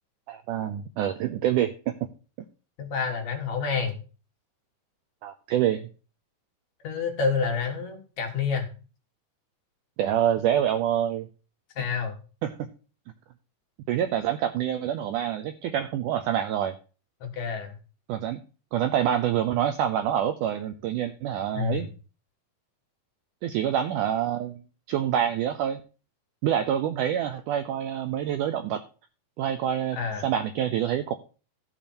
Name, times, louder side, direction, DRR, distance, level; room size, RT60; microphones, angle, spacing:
voice 1, 0.3-2.0 5.2-5.9 10.0-11.3 12.4-12.7 13.9-16.7 18.1-18.4 18.7-21.9 23.4-24.6 24.9-25.8 26.4-28.8 29.4-30.0 30.2-31.1, right 10 dB, 80° right, 9 dB, 1.8 m, -26 dB
voice 2, 2.8-4.0 6.8-8.7 11.8-12.2 17.2-17.7 21.5-21.9 29.9-30.3, left 5 dB, 55° left, 2 dB, 2.7 m, -28 dB
14.5 x 6.9 x 4.4 m, 0.36 s
omnidirectional pair, 4.3 m